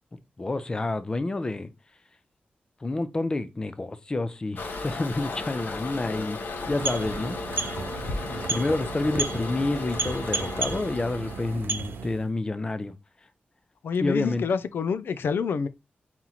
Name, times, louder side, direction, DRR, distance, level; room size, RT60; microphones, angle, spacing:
voice 1, 0.4-1.7 2.8-6.4 6.7-7.4 8.1-12.9 14.0-14.4, left 2 dB, 20° left, 0.4 m, -29 dB
Toilet flush, 4.6-11.6, left 3 dB, 65° left, 0.9 m, -35 dB
sound 1, 6.5-12.3, right 4 dB, 90° right, 0.5 m, -33 dB
voice 2, 13.8-15.7, left 6 dB, 85° left, 0.4 m, -27 dB
4.3 x 3.0 x 3.7 m
wide cardioid pair, 175°, 4 cm